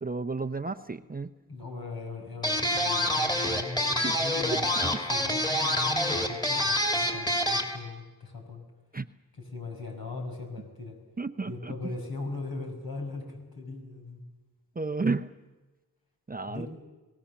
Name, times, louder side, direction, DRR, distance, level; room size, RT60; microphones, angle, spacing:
voice 1, 0.0-1.3 4.0-4.1 8.9-9.1 11.2-11.7 14.8-15.2 16.3-16.7, right 3 dB, 25° right, 8 dB, 0.7 m, -31 dB
voice 2, 1.5-8.6 9.4-11.0 11.5-14.2 16.5-16.7, left 3 dB, 70° left, 2 dB, 5.7 m, -39 dB
sound 1, 2.4-7.8, left 1 dB, 10° left, 3.1 m, -27 dB
28.0 x 18.5 x 7.2 m, 1.2 s
wide cardioid pair, 75°, 38 cm